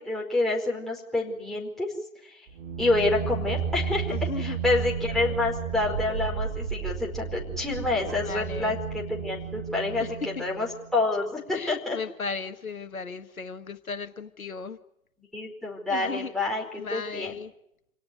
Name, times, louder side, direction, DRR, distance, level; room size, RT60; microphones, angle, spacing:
voice 1, 0.0-1.9 2.2-2.4 2.8-12.0 15.3-17.3, left 2 dB, ahead, -3 dB, 4.8 m, -28 dB
sound 1, 2.5-11.0, right 7 dB, 40° right, 3.6 m, -33 dB
voice 2, 4.1-4.6 8.2-8.8 10.0-10.1 11.5-14.8 15.9-16.3 16.8-17.5, left 4 dB, 75° left, 9 dB, 1.7 m, -36 dB
27.0 x 18.0 x 9.7 m, 0.78 s
figure-of-eight pair, 120°, 42 cm